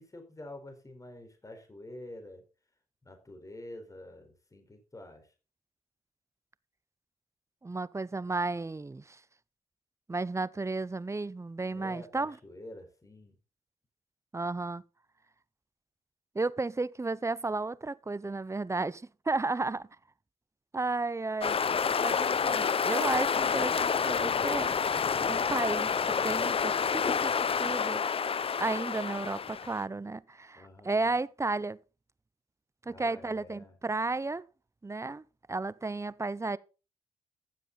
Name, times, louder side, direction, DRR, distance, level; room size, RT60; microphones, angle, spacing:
voice 1, 0.0-2.4 3.0-5.3 11.7-13.4 30.5-31.2 32.8-33.7, left 1 dB, 25° left, 4.4 m, -48 dB
voice 2, 7.6-9.2 10.1-12.4 14.3-14.8 16.3-19.9 20.7-21.6 22.0-24.7 25.3-28.0 28.6-31.8 32.9-34.4 34.8-36.6, right 3 dB, 20° right, 0.7 m, -33 dB
sound 1, 21.4-29.8, left 6 dB, 40° left, 0.7 m, -29 dB
14.5 x 7.5 x 4.0 m
supercardioid pair, 55°, 14 cm